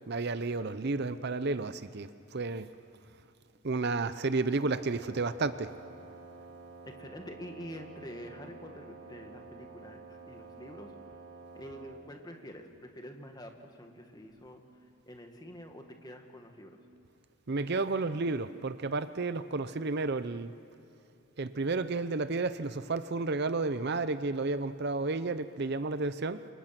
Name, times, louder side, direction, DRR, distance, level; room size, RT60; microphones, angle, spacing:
voice 1, 0.1-2.7 3.6-5.7 17.5-20.5 21.4-26.5, right 3 dB, 50° right, 12 dB, 0.6 m, -32 dB
Wind instrument woodwind instrument, 4.7-12.1, right 3 dB, 90° right, 3.9 m, -50 dB
voice 2, 6.9-10.9 11.6-14.6 15.1-16.8, equal, 20° left, 4 dB, 1.9 m, -47 dB
29.5 x 26.5 x 6.0 m, 2.8 s
head